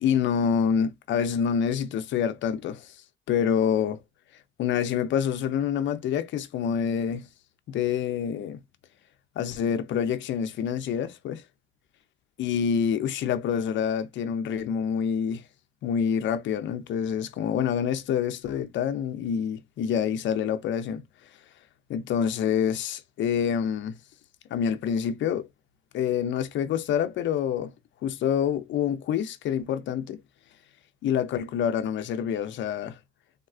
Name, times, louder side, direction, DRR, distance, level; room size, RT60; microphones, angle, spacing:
voice 1, 0.0-2.9 3.3-4.0 4.6-7.3 7.7-8.6 9.4-11.4 12.4-15.4 15.8-21.0 21.9-24.0 24.5-25.5 25.9-27.7 28.0-30.2 31.0-33.0, left 8 dB, 70° left, 0.5 m, -27 dB
3.5 x 2.3 x 2.3 m
cardioid pair, 90°, 20 cm